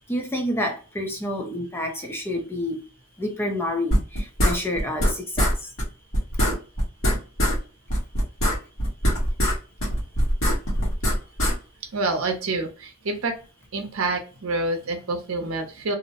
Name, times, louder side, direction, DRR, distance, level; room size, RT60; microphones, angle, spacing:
voice 1, 0.1-2.8 3.2-5.5, left 1 dB, 10° left, 0.5 m, -28 dB
sound 1, 3.9-5.1 5.4-5.5 5.8-5.9 6.1-7.6 7.9-9.6 9.8-11.5, equal, 65° left, 1.0 m, -21 dB
voice 2, 11.9-13.3 13.7-16.0, right 2 dB, 65° right, 0.7 m, -27 dB
2.6 x 2.0 x 2.7 m
head